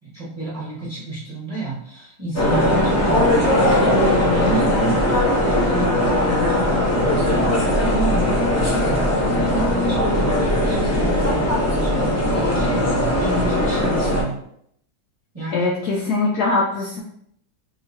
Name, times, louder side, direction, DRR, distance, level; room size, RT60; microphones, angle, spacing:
voice 1, 0.0-5.0 5.4-8.4 8.7-14.4 15.3-15.7, right 1 dB, 25° right, -8 dB, 1.0 m, -30 dB
sound 1, 2.3-14.2, left 1 dB, 20° left, 0.4 m, -19 dB
voice 2, 2.7-3.1 15.5-17.0, left 3 dB, 70° left, -2 dB, 1.0 m, -22 dB
4.8 x 3.0 x 2.7 m, 0.70 s
omnidirectional pair, 2.0 m